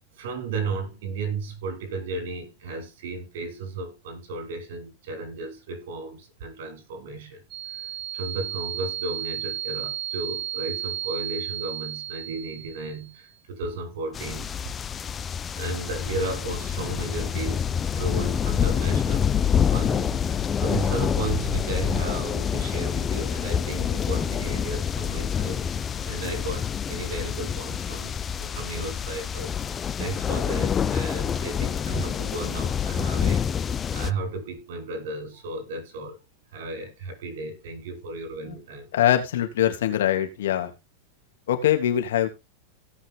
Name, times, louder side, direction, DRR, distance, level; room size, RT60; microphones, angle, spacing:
voice 1, 0.2-7.4 7.7-14.5 15.5-19.4 19.7-33.4 33.9-36.2 36.5-38.9, right 3 dB, 70° right, 6.5 m, -34 dB
sound 1, 7.5-13.2, right 11 dB, 35° right, 1.9 m, -33 dB
sound 2, 14.1-34.1, left 8 dB, 25° left, 0.7 m, -27 dB
voice 2, 38.9-40.7 41.5-42.3, left 11 dB, 80° left, 3.1 m, -23 dB
17.0 x 6.6 x 3.9 m
supercardioid pair, 130°, 0 cm